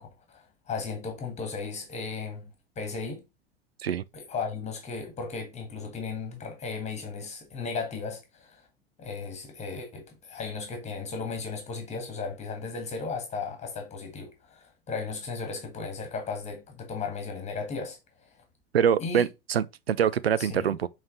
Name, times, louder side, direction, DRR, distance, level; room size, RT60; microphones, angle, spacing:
voice 1, 0.0-2.5 2.8-3.2 4.1-8.6 9.0-18.0 19.0-19.3 20.4-20.8, left 4 dB, 20° left, 1.6 m, -35 dB
voice 2, 18.7-20.9, right 8 dB, 75° right, 0.5 m, -25 dB
6.5 x 4.1 x 3.8 m
figure-of-eight pair, 85°, 31 cm